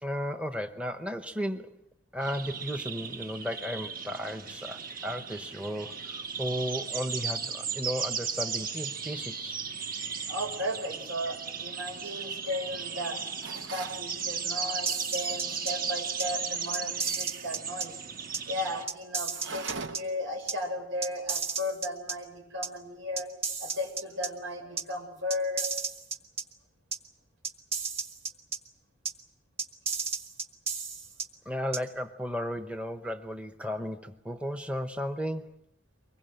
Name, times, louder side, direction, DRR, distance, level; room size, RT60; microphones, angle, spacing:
voice 1, 0.0-1.8 2.1-9.6 31.5-35.6, equal, 5° right, 8 dB, 0.9 m, -34 dB
sound 1, 2.2-18.8, right 6 dB, 45° right, 1.4 m, -36 dB
voice 2, 10.3-13.2 13.7-17.9 18.5-23.3 23.6-25.7, left 1 dB, 85° right, 4 dB, 6.4 m, -35 dB
sound 2, 13.4-14.1 19.3-20.2, right 4 dB, 65° right, 1.0 m, -39 dB
sound 3, 14.9-15.7 16.2-16.3 16.7-17.9 18.3-18.4 18.9-20.0 20.5-20.6 21.0-22.1 22.6-22.7 23.2-24.3 24.8-24.9 25.3-26.4 26.9-27.0 27.4-28.6 29.1-29.2 29.6-31.3 31.7-31.8, right 5 dB, 30° right, 1.7 m, -33 dB
24.5 x 22.0 x 7.9 m, 0.83 s
head